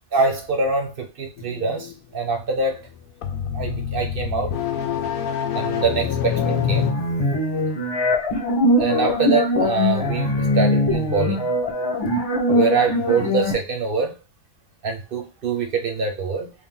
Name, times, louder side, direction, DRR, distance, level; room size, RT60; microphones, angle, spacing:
voice 1, 0.1-2.8 3.5-4.6 5.2-6.9 7.6-7.7 8.8-11.5 12.5-14.1 14.8-16.5, right 4 dB, 45° right, 0.9 m, -24 dB
sound 1, 1.4-1.9 2.9-6.9, left 9 dB, 80° left, 1.0 m, -26 dB
sound 2, 6.4-13.5, left 1 dB, 20° left, 0.7 m, -21 dB
3.4 x 2.6 x 3.7 m
omnidirectional pair, 1.5 m